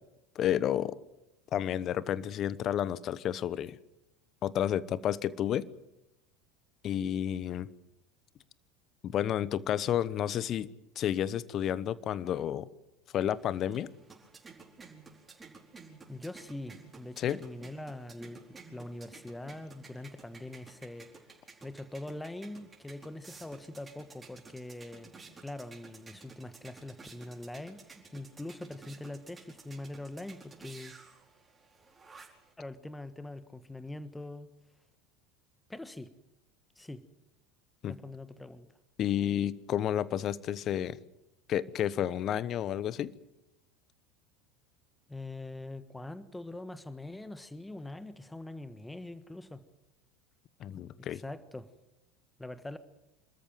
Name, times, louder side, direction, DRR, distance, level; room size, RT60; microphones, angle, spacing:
voice 1, 0.3-1.0 1.5-3.8 4.4-5.7 6.8-7.7 9.0-10.7 11.0-12.7 13.1-13.9 17.2-17.4 37.8-37.9 39.0-41.0 41.5-43.1 50.6-51.2, left 10 dB, 40° left, 19 dB, 1.0 m, -31 dB
sound 1, 13.4-32.5, right 4 dB, 20° right, 4.6 m, -53 dB
voice 2, 16.1-21.1 21.6-25.1 25.4-30.9 32.6-34.5 35.7-36.1 36.8-37.0 37.9-38.7 45.1-49.6 51.1-51.7 52.4-52.8, left 2 dB, 10° left, 13 dB, 1.5 m, -43 dB
27.0 x 14.0 x 9.2 m, 0.93 s
figure-of-eight pair, 75°, 0 cm